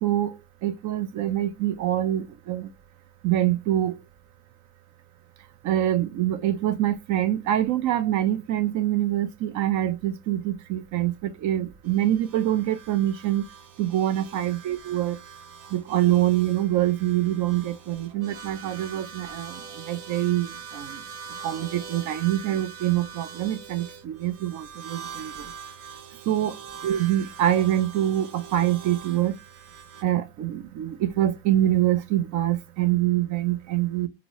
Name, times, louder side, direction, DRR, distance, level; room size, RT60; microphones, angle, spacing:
voice 1, 0.0-0.4 0.6-2.7 3.2-4.0 5.6-13.4 13.8-15.2 15.7-19.5 19.9-21.0 21.4-25.3 26.3-26.5 26.8-29.3 30.0-34.1, right 13 dB, 45° right, 0.5 m, -25 dB
sound 1, 11.8-30.0, right 6 dB, 70° right, 1.0 m, -43 dB
2.9 x 2.7 x 2.9 m
supercardioid pair, 110°, 40 cm